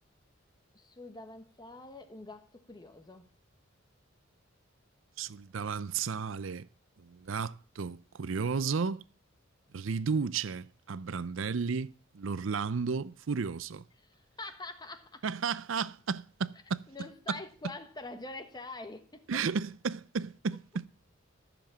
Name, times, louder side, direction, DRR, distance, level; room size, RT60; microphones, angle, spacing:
voice 1, 0.7-3.3 14.0-15.2 16.9-19.3, left 2 dB, 20° left, 1.3 m, -45 dB
voice 2, 5.2-6.7 7.0-9.0 9.7-13.8 15.2-16.8 19.3-20.9, right 5 dB, 70° right, 0.5 m, -33 dB
13.5 x 7.1 x 7.2 m
head